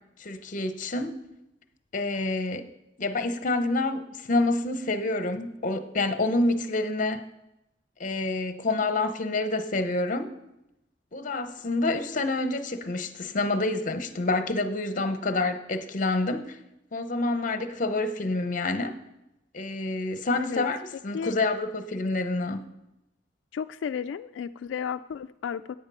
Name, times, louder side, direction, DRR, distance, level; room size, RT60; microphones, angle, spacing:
voice 1, 0.2-1.2 1.9-2.7 3.0-7.2 8.0-10.3 11.1-16.6 16.9-18.9 19.5-22.6, left 2 dB, 45° left, 0.8 m, -28 dB
voice 2, 20.4-20.7 21.1-21.3 23.5-25.8, left 7 dB, 90° left, 0.3 m, -33 dB
9.4 x 8.8 x 5.5 m
head